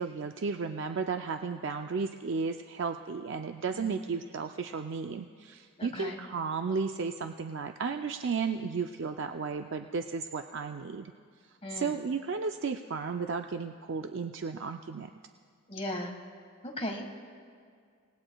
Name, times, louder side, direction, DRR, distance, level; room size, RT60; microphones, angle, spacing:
voice 1, 0.0-11.1 11.5-15.1, right 5 dB, 55° right, 6 dB, 0.4 m, -34 dB
voice 2, 5.8-6.2 11.6-12.0 15.7-16.1 16.6-17.0, left 1 dB, 25° left, 2 dB, 1.5 m, -37 dB
27.5 x 18.5 x 2.3 m, 2.1 s
head